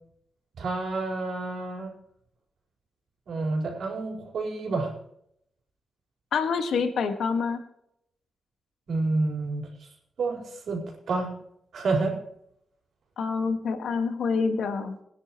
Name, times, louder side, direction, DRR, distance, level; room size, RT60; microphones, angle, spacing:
voice 1, 0.6-1.9 3.3-4.9 8.9-9.7 10.2-11.3 11.7-12.2, right 3 dB, 75° right, 0 dB, 4.4 m, -29 dB
voice 2, 6.3-7.6 13.2-15.0, left 5 dB, 85° left, 6 dB, 1.7 m, -27 dB
22.0 x 10.5 x 3.1 m, 0.74 s
wide cardioid pair, 125°, 0 cm